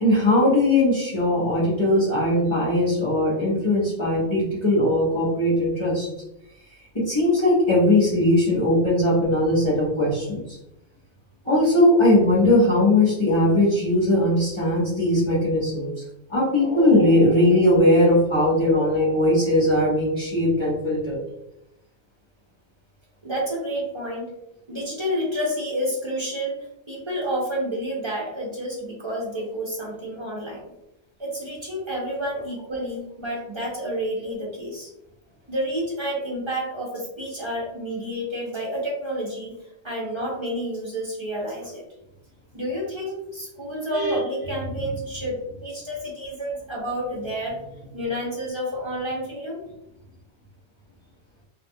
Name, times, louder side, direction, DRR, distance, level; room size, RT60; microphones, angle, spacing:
voice 1, 0.0-6.1 6.9-10.6 11.4-15.9 16.3-21.2 43.9-44.2, left 1 dB, 30° left, -9 dB, 0.8 m, -19 dB
voice 2, 23.2-24.3 24.7-26.6 26.9-30.7 31.2-34.9 35.5-39.5 39.8-41.8 42.5-47.6 47.9-49.6, equal, 35° right, -4 dB, 0.5 m, -29 dB
2.6 x 2.3 x 2.6 m, 0.83 s
omnidirectional pair, 1.2 m